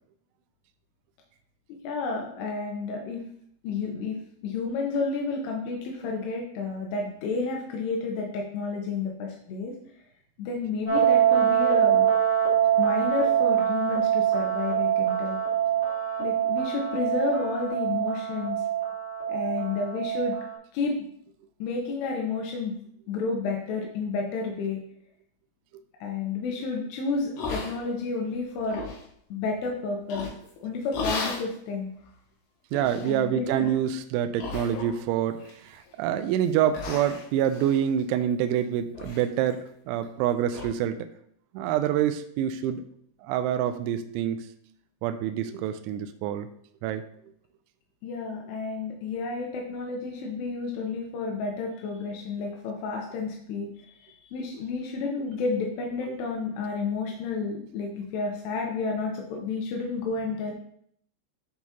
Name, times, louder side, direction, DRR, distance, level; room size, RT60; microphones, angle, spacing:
voice 1, 1.8-3.2 3.6-9.8 10.4-12.1 12.8-15.4 16.2-18.6 19.3-20.4 20.7-21.1 21.6-22.8 23.1-24.8 26.0-28.9 29.3-30.3 30.6-31.9 33.0-33.7 48.0-60.5, left 4 dB, 80° left, 1 dB, 2.5 m, -31 dB
sound 1, 10.9-20.5, right 10 dB, 20° left, 2.9 m, -24 dB
sound 2, 27.4-28.1 28.5-29.0 30.1-30.5 30.9-31.5 32.0-32.1 32.7-33.1 33.5-33.8 34.4-35.1 35.4-35.9 36.3-36.5 36.7-38.6 38.9-39.2 39.5-39.6 40.0-40.1 40.5-40.7, left 4 dB, 65° left, 2.9 m, -35 dB
voice 2, 32.7-41.0 41.5-42.8 43.2-44.4 45.0-46.5 46.8-47.0, right 10 dB, 85° right, 8 dB, 2.8 m, -26 dB
10.5 x 4.7 x 2.9 m, 0.66 s
omnidirectional pair, 5.7 m